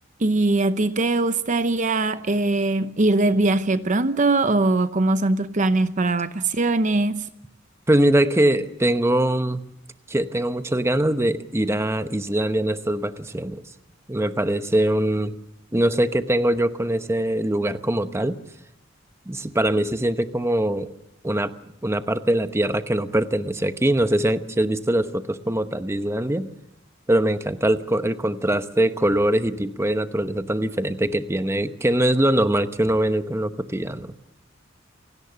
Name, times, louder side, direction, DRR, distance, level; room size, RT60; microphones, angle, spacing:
voice 1, 0.2-7.3, right 2 dB, 40° right, 0.8 m, -21 dB
voice 2, 7.9-9.6 10.1-13.6 14.1-15.3 15.7-18.4 19.3-20.9 21.2-21.5 21.8-26.5 27.1-34.1, right 1 dB, 15° right, 0.9 m, -22 dB
28.5 x 18.0 x 6.9 m
head